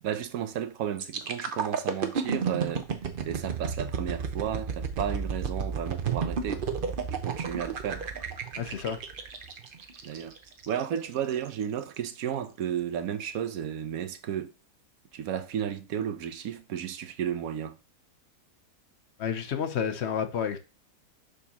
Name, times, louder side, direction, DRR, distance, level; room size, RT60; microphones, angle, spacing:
voice 1, 0.0-2.9 3.3-6.6 7.1-8.0 10.0-10.3 10.7-14.5 15.1-17.8, right 9 dB, 65° right, 1.1 m, -33 dB
sound 1, 1.0-10.8 11.3-11.5, right 6 dB, 45° right, 0.7 m, -32 dB
voice 2, 8.6-9.0 19.2-20.6, left 7 dB, 55° left, 0.8 m, -30 dB
6.7 x 5.2 x 2.9 m
omnidirectional pair, 1.7 m